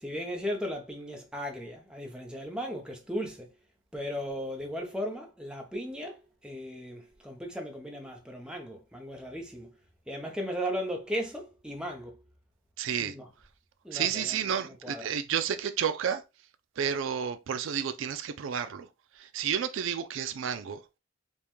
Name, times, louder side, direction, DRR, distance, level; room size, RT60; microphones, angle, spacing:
voice 1, 0.0-3.5 3.9-9.7 10.1-12.2 13.0-13.3 13.8-15.0, equal, 5° right, 0.7 m, -36 dB
voice 2, 12.8-13.1 13.9-16.2 16.8-18.9 19.2-20.8, right 8 dB, 70° right, 0.4 m, -31 dB
5.3 x 2.3 x 3.0 m
head